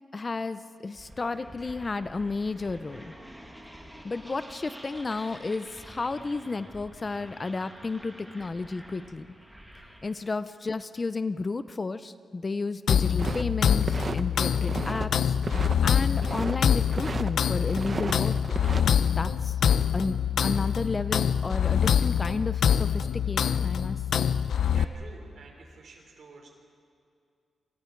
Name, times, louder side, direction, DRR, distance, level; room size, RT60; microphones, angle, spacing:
voice 1, 0.1-3.1 4.0-9.3 10.0-15.3 15.8-18.4 19.2-19.6 19.9-24.3, left 3 dB, 25° left, 12 dB, 0.5 m, -32 dB
sound 1, 0.9-10.3, equal, 5° right, 2.1 m, -48 dB
sound 2, 12.9-24.8, left 8 dB, 75° left, 0.7 m, -25 dB
sound 3, 13.2-14.2 14.5-15.1 15.4-16.6 16.9-17.3 17.7-18.8, right 4 dB, 30° right, 0.8 m, -34 dB
voice 2, 24.7-26.5, right 3 dB, 60° right, 0 dB, 4.8 m, -49 dB
28.0 x 27.0 x 4.6 m, 2.4 s
wide cardioid pair, 160°, 0 cm